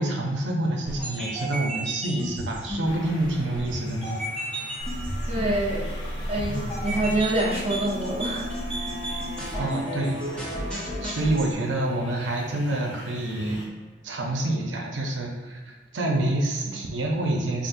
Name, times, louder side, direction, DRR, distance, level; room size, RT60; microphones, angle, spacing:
voice 1, 0.0-4.2 9.6-10.2 11.0-13.6 14.0-17.7, right 1 dB, 85° right, 0 dB, 0.6 m, -27 dB
sound 1, 0.9-11.5, right 1 dB, 5° left, 0.8 m, -34 dB
sound 2, 2.8-13.7, equal, 75° left, 1.0 m, -41 dB
sound 3, 4.8-9.6, equal, 90° left, 0.6 m, -35 dB
voice 2, 5.3-5.9 6.3-8.5, right 1 dB, 35° right, -4 dB, 0.7 m, -26 dB
5.1 x 2.5 x 2.5 m, 1.4 s
head